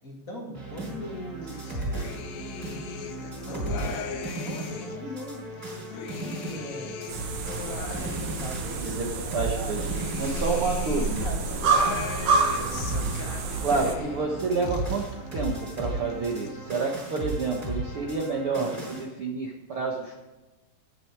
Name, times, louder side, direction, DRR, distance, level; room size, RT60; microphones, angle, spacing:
voice 1, 0.0-2.2 3.4-6.9 7.9-9.8 10.2-13.2 13.5-13.9, left 1 dB, 25° left, -2 dB, 2.6 m, -40 dB
sound 1, 0.5-19.1, right 1 dB, 20° right, 5.1 m, -36 dB
sound 2, 1.4-5.1 5.5-9.0 9.4-14.3 14.6-15.4 15.7-16.5, left 7 dB, 80° left, 3.3 m, -39 dB
sound 3, 7.1-13.9, right 4 dB, 60° right, 2.1 m, -28 dB
voice 2, 9.3-9.8 10.2-11.2 13.6-15.1 15.3-20.3, right 4 dB, 75° right, -1 dB, 1.2 m, -29 dB
20.0 x 8.0 x 4.8 m, 1.1 s
omnidirectional pair, 5.0 m